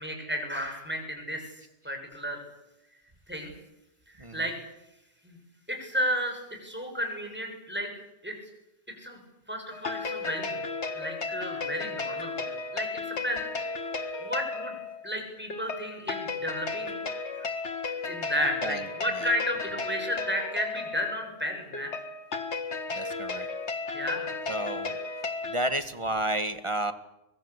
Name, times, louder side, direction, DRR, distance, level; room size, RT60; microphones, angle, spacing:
voice 1, 0.0-1.5 1.8-2.4 3.3-3.5 4.1-4.5 5.2-5.4 5.7-7.9 8.2-8.4 8.9-9.2 9.5-10.6 10.9-13.4 14.2-14.8 15.0-17.0 17.4-17.6 17.8-22.0 23.9-24.3, equal, 10° right, 4 dB, 6.7 m, -33 dB
sound 1, 9.7-25.6, left 4 dB, 60° left, 2.1 m, -34 dB
voice 2, 22.9-23.5 24.5-25.0 25.5-26.9, right 1 dB, 25° right, 10 dB, 1.7 m, -31 dB
24.5 x 23.5 x 8.2 m, 0.95 s
omnidirectional pair, 1.3 m